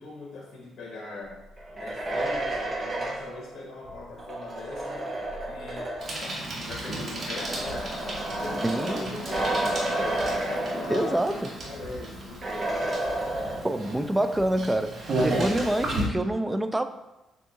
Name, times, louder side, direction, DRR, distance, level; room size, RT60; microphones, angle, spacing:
voice 1, 0.0-1.5 1.7-5.0 5.4-11.4 11.7-13.0, left 3 dB, 60° left, -2 dB, 1.0 m, -41 dB
sound 1, 1.6-6.3 7.2-11.4 11.7-11.8 12.4-14.0, right 1 dB, 30° right, 1.0 m, -31 dB
Bicycle, 6.0-16.1, right 1 dB, 50° right, 1.4 m, -33 dB
voice 2, 8.6-9.1 10.9-11.5 13.6-16.9, right 1 dB, 10° right, 9 dB, 0.3 m, -26 dB
6.9 x 2.7 x 2.8 m, 1.0 s
cardioid pair, 90°, 0 cm